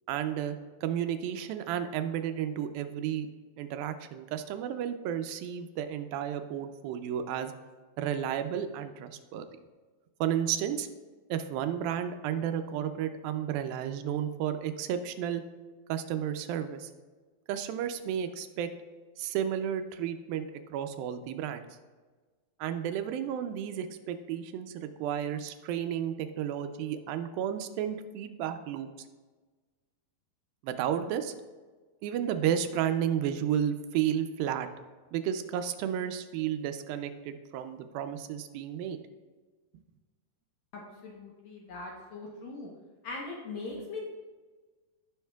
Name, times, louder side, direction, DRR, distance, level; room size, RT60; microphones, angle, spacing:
voice 1, 0.1-0.6 0.8-3.3 3.6-7.5 8.0-9.5 10.2-10.9 11.3-15.4 15.9-16.9 17.5-18.7 19.2-21.7 22.6-28.9 30.6-31.3 32.0-34.7 35.1-39.0, right 9 dB, 85° right, 8 dB, 2.4 m, -32 dB
voice 2, 40.7-42.7 43.0-44.0, left 3 dB, 65° left, -2 dB, 1.9 m, -40 dB
16.0 x 5.6 x 2.3 m, 1.3 s
omnidirectional pair, 4.1 m